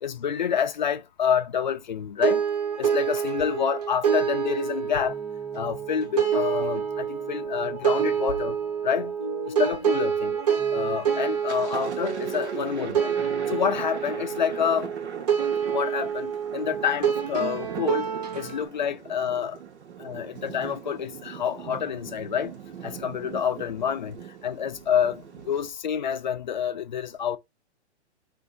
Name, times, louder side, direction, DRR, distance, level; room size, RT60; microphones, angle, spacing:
voice 1, 0.0-2.4 2.8-5.2 5.5-8.6 8.8-9.2 9.5-10.4 10.7-13.1 13.5-15.0 15.7-18.1 18.3-19.6 20.0-27.4, left 8 dB, 45° left, 0.4 m, -28 dB
sound 1, 2.2-18.6, right 8 dB, 35° right, 0.7 m, -27 dB
sound 2, 5.1-13.7, right 2 dB, 5° left, 0.8 m, -41 dB
Thunder, 10.5-10.9 11.3-25.7, right 8 dB, 80° right, 0.9 m, -40 dB
3.5 x 2.6 x 3.8 m
hypercardioid pair, 175°, 34 cm